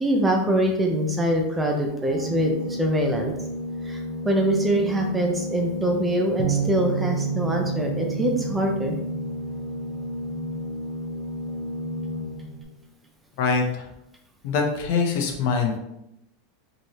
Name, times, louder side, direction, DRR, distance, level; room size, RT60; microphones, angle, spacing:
voice 1, 0.0-3.3 3.8-8.9, right 1 dB, 10° right, 1 dB, 0.6 m, -24 dB
Organ, 2.0-12.7, left 1 dB, 60° right, 1.1 m, -33 dB
Bass guitar, 6.4-10.8 11.5-12.6, right 8 dB, 40° right, 0.8 m, -32 dB
voice 2, 13.4-13.9 14.4-15.8, left 5 dB, 60° left, 2 dB, 1.0 m, -23 dB
5.3 x 3.2 x 2.9 m, 0.85 s
supercardioid pair, 150°, 0 cm